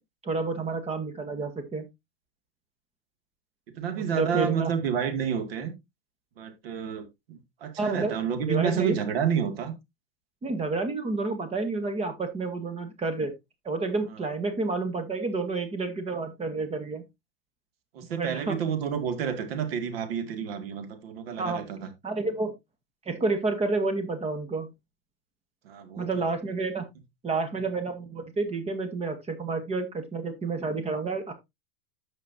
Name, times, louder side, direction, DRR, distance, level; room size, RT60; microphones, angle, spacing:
voice 1, 0.2-1.9 4.0-4.7 7.8-8.1 8.5-9.0 10.4-13.3 13.6-17.0 18.1-18.6 21.4-21.6 22.0-22.5 23.0-24.7 26.0-26.9 27.2-31.3, right 3 dB, 20° right, 1.5 m, -29 dB
voice 2, 3.8-5.7 6.4-9.7 17.9-21.9 25.6-26.1, right 7 dB, 80° right, 2.3 m, -29 dB
14.0 x 5.2 x 2.7 m
supercardioid pair, 125°, 30 cm